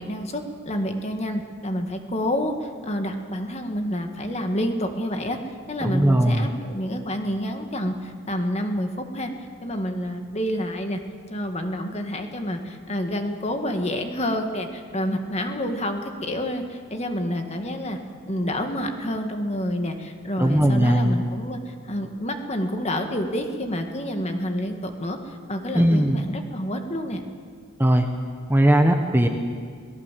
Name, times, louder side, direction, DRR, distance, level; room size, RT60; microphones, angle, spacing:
voice 1, 0.0-5.4 5.7-9.3 9.6-11.0 11.3-18.0 18.3-27.2, equal, 30° left, 5 dB, 1.9 m, -28 dB
voice 2, 5.8-6.5 20.4-21.2 25.7-26.2 27.8-28.1 28.5-29.3, right 1 dB, 10° right, 4 dB, 1.1 m, -19 dB
27.0 x 18.5 x 7.6 m, 2.1 s
head